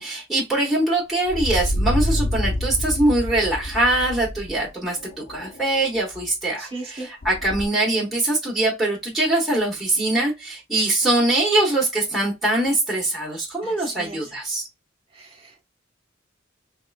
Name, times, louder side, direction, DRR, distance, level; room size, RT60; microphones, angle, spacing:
voice 1, 0.0-14.6, right 2 dB, ahead, 1.0 m, -22 dB
sound 1, 1.3-4.6 5.0-5.8 6.1-6.2 7.2-7.7, left 1 dB, 45° left, 0.5 m, -27 dB
voice 2, 6.6-7.1 13.6-14.3 15.1-15.7, right 2 dB, 30° right, 1.4 m, -37 dB
4.5 x 2.3 x 2.4 m
head